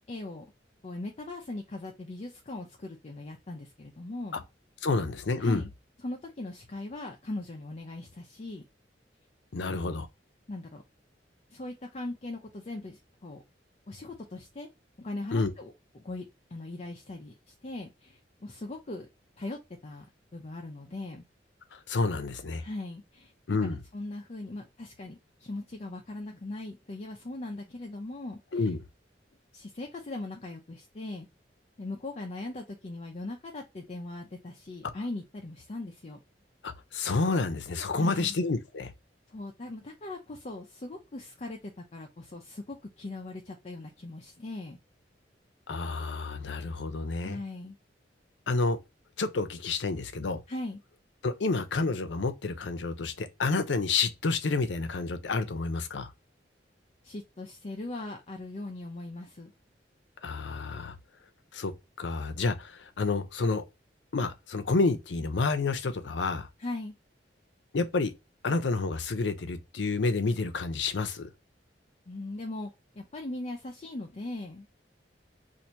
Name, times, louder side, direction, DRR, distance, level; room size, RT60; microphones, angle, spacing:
voice 1, 0.1-0.5 0.8-4.4 5.4-5.7 6.0-8.6 9.6-9.9 10.5-10.8 11.5-13.4 13.9-14.7 15.0-16.2 16.5-19.1 19.4-21.2 22.6-28.7 29.5-31.3 31.8-36.2 38.0-38.4 39.3-44.8 47.2-47.8 50.5-50.8 57.0-59.5 66.6-66.9 72.1-74.7, left 2 dB, 35° left, 0.5 m, -40 dB
voice 2, 4.8-5.6 9.5-10.1 15.3-15.5 21.7-22.6 23.5-23.8 28.5-28.8 36.6-38.9 45.7-47.4 48.5-48.8 49.2-50.4 51.2-56.1 60.2-61.0 61.5-61.7 62.0-63.6 64.1-66.5 67.7-68.1 68.4-71.3, left 3 dB, 80° left, 0.6 m, -29 dB
2.8 x 2.5 x 4.3 m
head